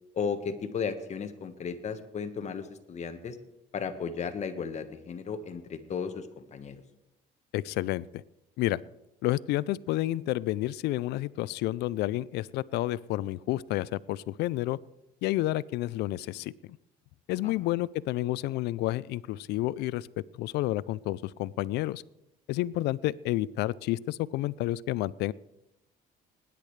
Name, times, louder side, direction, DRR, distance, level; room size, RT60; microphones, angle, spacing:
voice 1, 0.1-3.4 3.7-6.8, left 6 dB, 40° left, 8 dB, 1.3 m, -35 dB
voice 2, 7.5-8.2 8.6-8.8 9.2-14.8 15.2-16.5 17.3-20.1 20.4-22.0 22.5-25.3, left 16 dB, 80° left, 21 dB, 0.4 m, -30 dB
20.0 x 10.5 x 3.2 m, 0.89 s
cardioid pair, 110°, 17 cm